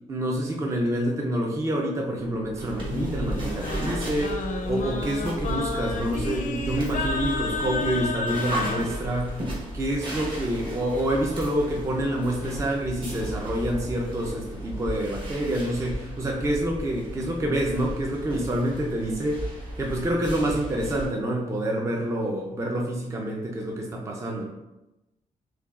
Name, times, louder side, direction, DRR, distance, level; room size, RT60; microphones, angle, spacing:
voice 1, 0.1-9.4 9.7-19.4 19.8-24.4, right 1 dB, 20° right, -1 dB, 0.4 m, -27 dB
sound 1, 2.2-9.9, right 3 dB, 80° right, 0.7 m, -40 dB
sound 2, 2.6-21.1, right 1 dB, 35° right, 1.1 m, -35 dB
Singing, 2.8-8.9, left 4 dB, 65° left, 0.5 m, -31 dB
5.8 x 2.2 x 2.4 m, 0.95 s
wide cardioid pair, 160°, 14 cm